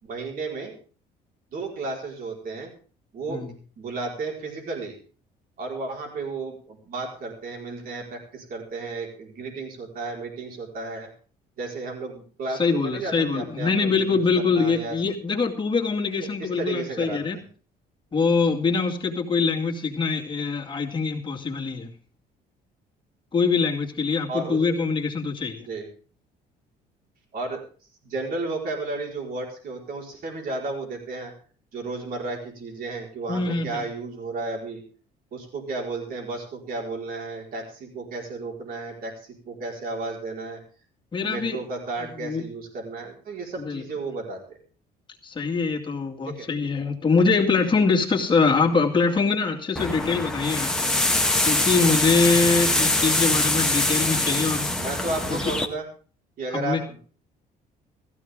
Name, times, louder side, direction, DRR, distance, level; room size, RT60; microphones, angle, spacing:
voice 1, 0.0-0.7 1.5-2.7 3.1-3.4 3.8-4.9 5.6-11.1 11.6-15.0 16.4-17.4 24.3-24.6 25.6-25.9 27.3-27.7 28.0-31.3 31.7-34.8 35.3-40.6 41.2-44.6 46.3-46.5 54.8-55.8 56.4-57.0, right 3 dB, 60° right, 0 dB, 4.8 m, -33 dB
voice 2, 12.6-17.4 18.1-21.9 23.3-25.7 33.3-33.8 41.1-41.6 42.2-42.4 43.6-43.8 45.2-50.8 51.4-54.7 55.3-55.5 56.5-56.8, left 4 dB, 30° left, 0 dB, 2.4 m, -23 dB
sound 1, 49.8-55.7, left 2 dB, 5° left, 1.6 m, -23 dB
16.0 x 14.5 x 3.7 m, 0.41 s
cardioid pair, 110°, 17 cm